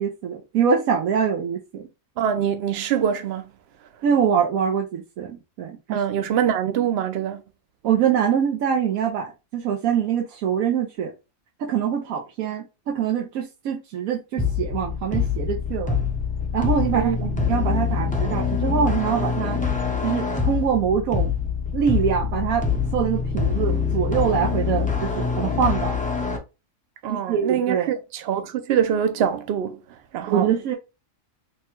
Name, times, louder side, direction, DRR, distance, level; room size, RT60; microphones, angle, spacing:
voice 1, 0.0-1.9 4.0-6.0 7.8-11.1 11.6-16.0 16.5-17.1 17.5-19.6 20.0-21.3 21.7-22.7 22.9-25.9 27.1-27.9 30.3-30.7, right 7 dB, 90° right, 1.1 m, -24 dB
voice 2, 2.2-3.4 5.9-7.4 16.9-17.4 27.0-29.8 30.1-30.5, right 9 dB, 60° right, 0.7 m, -24 dB
sound 1, 14.4-26.4, left 6 dB, 10° left, 0.4 m, -25 dB
3.3 x 2.2 x 4.3 m
omnidirectional pair, 1.5 m